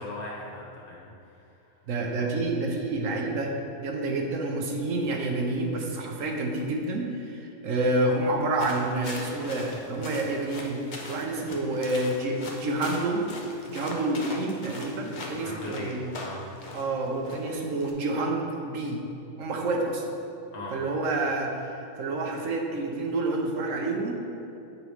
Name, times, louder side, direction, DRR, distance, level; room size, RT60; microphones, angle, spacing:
voice 1, 0.0-1.7 15.3-16.4 20.5-20.7, left 2 dB, 80° left, -4 dB, 1.7 m, -40 dB
voice 2, 1.9-13.3 13.7-16.1 16.7-19.0 19.4-20.2 20.7-24.1, right 2 dB, 65° right, 1 dB, 1.1 m, -28 dB
sound 1, 8.6-17.9, left 2 dB, 45° left, 0.6 m, -41 dB
8.0 x 3.1 x 4.8 m, 2.8 s
omnidirectional pair, 1.5 m